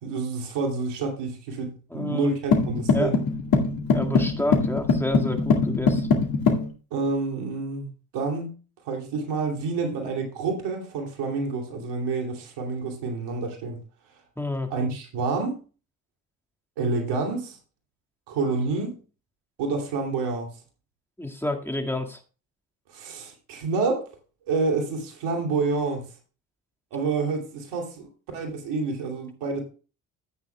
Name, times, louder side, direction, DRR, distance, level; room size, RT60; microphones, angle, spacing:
voice 1, 0.0-3.2 6.9-8.5 8.8-13.8 14.7-15.6 16.8-17.6 18.3-18.9 19.6-20.5 22.9-24.1 24.5-26.1 26.9-28.1 28.3-29.6, right 4 dB, 80° right, 2 dB, 2.8 m, -28 dB
voice 2, 1.9-2.3 2.9-3.2 3.9-6.1 14.4-14.7 21.2-22.2, left 1 dB, 5° left, 3 dB, 1.9 m, -29 dB
sound 1, 2.5-6.7, left 4 dB, 55° left, 2.2 m, -22 dB
13.0 x 9.1 x 2.3 m, 0.35 s
hypercardioid pair, 50°, 41 cm